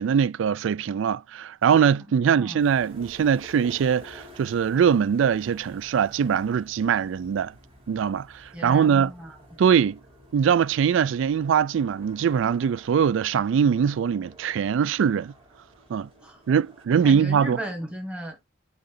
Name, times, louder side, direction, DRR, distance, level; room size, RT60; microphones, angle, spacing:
voice 1, 0.0-7.5 7.9-9.1 9.6-10.0 10.3-15.3 15.9-16.1 16.5-17.6, right 7 dB, 75° right, 0.3 m, -22 dB
voice 2, 2.2-2.7 8.5-9.3 16.2-16.4 17.0-18.4, equal, 5° right, 1.5 m, -36 dB
sound 1, 2.6-16.9, equal, 30° right, 3.3 m, -51 dB
6.6 x 3.7 x 4.1 m
head